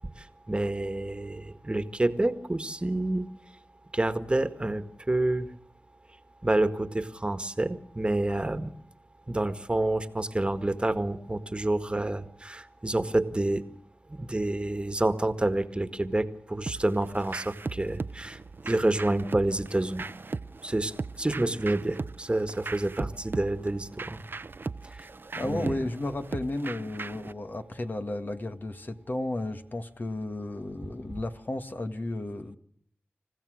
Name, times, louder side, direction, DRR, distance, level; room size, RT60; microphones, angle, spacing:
voice 1, 0.2-3.3 3.9-5.5 6.4-8.7 9.3-13.6 14.1-18.4 18.6-20.1 20.6-24.2 24.9-25.1 25.4-25.7, right 2 dB, 25° right, 10 dB, 1.7 m, -28 dB
sound 1, 16.7-27.3, right 4 dB, 55° right, 0.8 m, -38 dB
voice 2, 25.3-32.6, left 2 dB, 45° left, 7 dB, 1.9 m, -33 dB
28.5 x 15.5 x 6.5 m, 0.65 s
wide cardioid pair, 60°, 4 cm